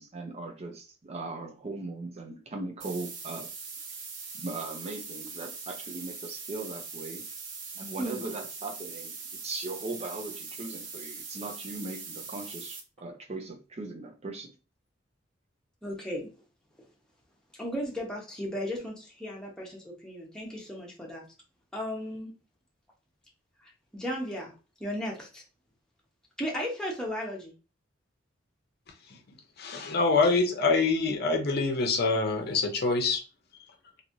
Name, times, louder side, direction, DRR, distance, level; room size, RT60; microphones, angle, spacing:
voice 1, 0.0-3.5 4.3-7.2 7.8-9.1 9.4-14.5, right 3 dB, 35° right, 0.5 m, -39 dB
sound 1, 2.8-12.8, right 5 dB, 75° right, 0.8 m, -41 dB
voice 2, 15.8-16.3 17.5-21.2 21.7-22.3 23.6-24.5 24.8-25.4 26.4-27.5, equal, 5° left, 0.9 m, -35 dB
voice 3, 29.6-33.2, left 3 dB, 55° left, 0.6 m, -25 dB
3.0 x 2.7 x 2.6 m
head